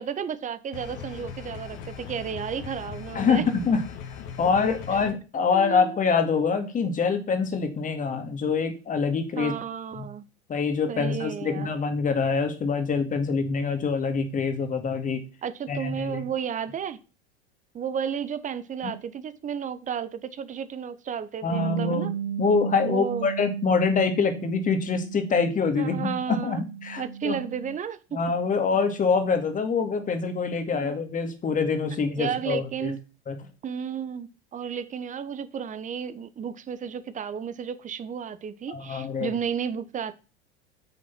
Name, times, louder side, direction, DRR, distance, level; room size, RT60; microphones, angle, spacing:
voice 1, 0.0-3.5 5.5-6.0 9.4-10.2 10.9-11.7 15.4-17.0 17.7-22.1 22.8-23.3 25.8-26.6 27.0-28.0 30.7-31.0 32.2-33.0 33.6-40.1, right 7 dB, 25° right, 1.0 m, -33 dB
sound 1, 0.7-5.1, left 7 dB, 50° left, 2.4 m, -39 dB
voice 2, 3.1-3.8 4.4-9.5 10.0-10.1 10.5-15.2 15.7-16.2 18.8-18.9 21.4-22.1 22.4-27.4 28.1-32.9 33.3-33.4 38.7-39.4, left 5 dB, 25° left, 2.2 m, -25 dB
Bass guitar, 21.5-27.8, right 8 dB, 80° right, 1.9 m, -35 dB
9.4 x 6.2 x 5.9 m
figure-of-eight pair, 80°, 33 cm